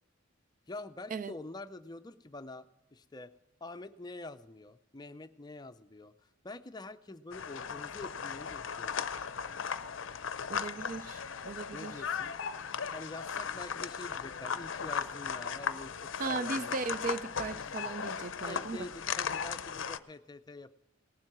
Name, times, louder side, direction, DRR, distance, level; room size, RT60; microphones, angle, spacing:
voice 1, 0.7-3.3 3.6-9.1 11.7-12.3 12.9-16.7 18.1-20.7, left 2 dB, 20° left, 0.5 m, -46 dB
sound 1, 7.3-20.0, left 6 dB, 65° left, 0.6 m, -37 dB
voice 2, 10.5-11.9 16.2-18.8, right 4 dB, 40° right, 0.3 m, -37 dB
18.0 x 7.6 x 5.9 m
head